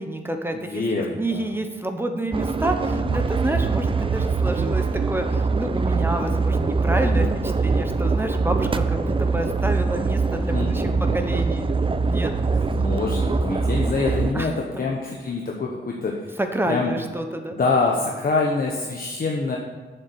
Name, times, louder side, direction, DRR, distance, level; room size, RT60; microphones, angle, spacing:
voice 1, 0.0-0.8 1.2-7.3 7.6-11.7 12.1-12.3 14.3-14.5 16.4-17.6, right 1 dB, 10° right, 5 dB, 1.0 m, -28 dB
voice 2, 0.5-1.5 2.9-3.2 7.0-7.3 10.5-11.3 12.5-16.4 16.7-16.9 17.5-19.6, left 3 dB, 50° left, -1 dB, 1.2 m, -26 dB
sound 1, 2.3-14.3, right 4 dB, 25° right, 0.5 m, -23 dB
7.2 x 7.1 x 8.1 m, 1.4 s
wide cardioid pair, 125°, 19 cm